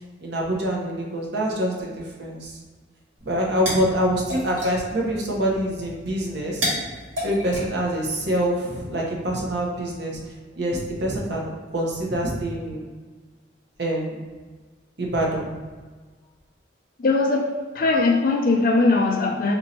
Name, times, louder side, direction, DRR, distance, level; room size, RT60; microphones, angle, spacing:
voice 1, 0.2-2.6 3.3-6.7 7.2-10.2 10.5-12.9 13.8-14.2 15.0-15.5, equal, 60° right, -2 dB, 0.7 m, -25 dB
sound 1, 3.2-8.5, equal, 85° right, 1.4 m, -33 dB
voice 2, 17.0-17.5 17.8-19.6, left 3 dB, 45° left, 3 dB, 0.4 m, -20 dB
3.0 x 2.6 x 4.1 m, 1.4 s
head